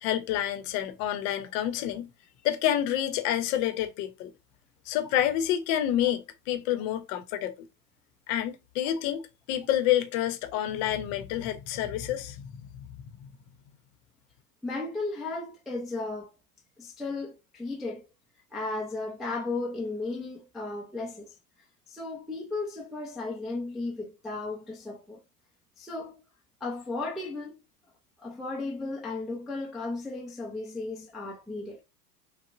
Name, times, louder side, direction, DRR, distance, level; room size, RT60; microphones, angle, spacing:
voice 1, 0.0-2.1 2.4-4.3 4.9-7.7 8.3-12.9 13.2-13.3, left 11 dB, 45° left, 0.8 m, -28 dB
voice 2, 14.6-16.3 16.8-18.1 18.5-21.3 21.9-25.2 25.8-26.2 26.6-27.5 28.2-31.8, left 3 dB, ahead, 0.4 m, -35 dB
6.3 x 2.1 x 2.5 m
hypercardioid pair, 95°, 47 cm